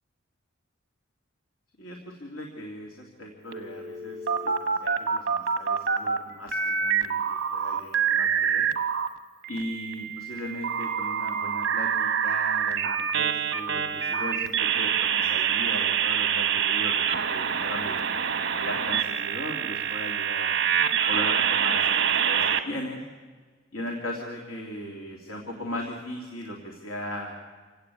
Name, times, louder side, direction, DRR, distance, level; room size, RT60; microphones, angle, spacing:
voice 1, 1.8-8.7 9.5-18.0 18.5-20.6 21.0-23.0 23.7-27.3, left 1 dB, 90° left, 0 dB, 3.0 m, -38 dB
sound 1, 3.5-6.2 6.5-9.1 9.4-22.6, right 7 dB, 55° right, 1.4 m, -26 dB
27.0 x 17.5 x 8.6 m, 1.5 s
head